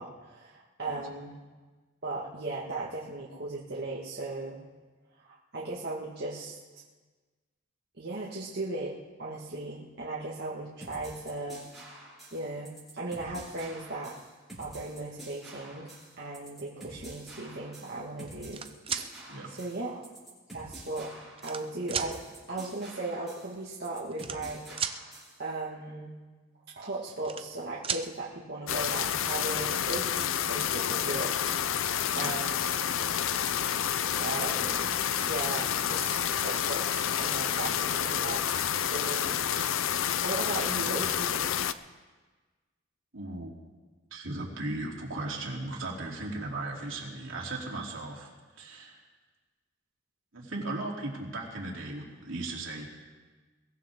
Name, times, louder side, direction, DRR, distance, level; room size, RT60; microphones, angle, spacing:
voice 1, 0.0-1.4 2.0-4.6 5.2-6.6 8.0-8.9 9.2-11.6 12.3-14.1 14.6-15.9 16.2-18.6 19.0-19.1 19.5-20.0 20.5-22.2 22.5-24.6 25.4-26.1 26.8-31.3 31.7-31.9 32.1-32.6 33.2-33.5 34.2-35.0 35.2-38.4 38.9-41.5, right 2 dB, 55° right, -6 dB, 1.8 m, -37 dB
sound 1, 10.8-25.4, right 1 dB, ahead, 6.9 m, -48 dB
sound 2, 18.3-19.1 20.0-20.1 21.0-21.6 21.9-22.1 23.3-23.4 23.5-23.7 24.1-25.0 26.9-27.6 27.8-28.1 29.5-29.6 29.9-30.3, right 7 dB, 30° right, 0.6 m, -34 dB
sound 3, 28.7-41.7, left 9 dB, 85° left, 0.5 m, -29 dB
voice 2, 43.1-43.5 44.1-48.3 48.6-49.0 50.3-52.8, right 2 dB, 75° right, -2 dB, 3.2 m, -37 dB
22.5 x 14.5 x 3.7 m, 1.3 s
head